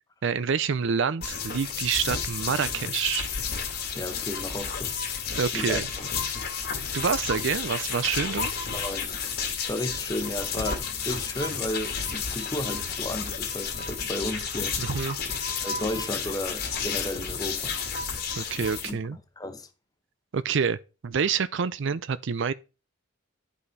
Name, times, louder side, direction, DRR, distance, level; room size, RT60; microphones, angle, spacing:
voice 1, 0.2-3.3 5.4-5.9 6.9-8.5 14.8-15.2 18.4-19.2 20.3-20.8 21.0-22.5, right 6 dB, 55° right, 0.4 m, -27 dB
sound 1, 1.2-18.9, left 6 dB, 45° left, 1.7 m, -31 dB
voice 2, 3.9-5.0 5.5-5.8 8.7-9.2 9.6-14.8 15.6-17.8 18.6-19.0 19.4-19.7, left 1 dB, 15° left, 0.8 m, -33 dB
10.5 x 5.6 x 4.1 m
head